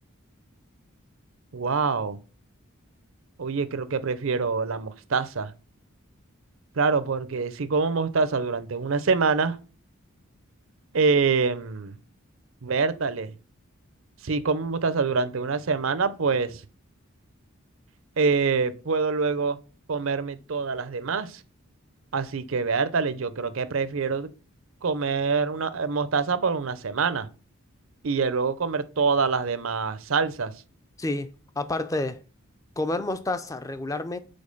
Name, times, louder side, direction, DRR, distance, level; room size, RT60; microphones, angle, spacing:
voice 1, 1.5-2.2 3.4-5.5 6.8-9.6 10.9-11.9 12.6-13.3 14.2-16.6 18.2-19.6 19.9-21.4 22.1-24.3 24.8-27.3 28.0-30.5, right 4 dB, 65° right, 0.6 m, -25 dB
voice 2, 31.0-31.3 31.6-32.2 32.8-34.2, left 2 dB, 15° left, 0.4 m, -29 dB
5.2 x 4.4 x 5.3 m
head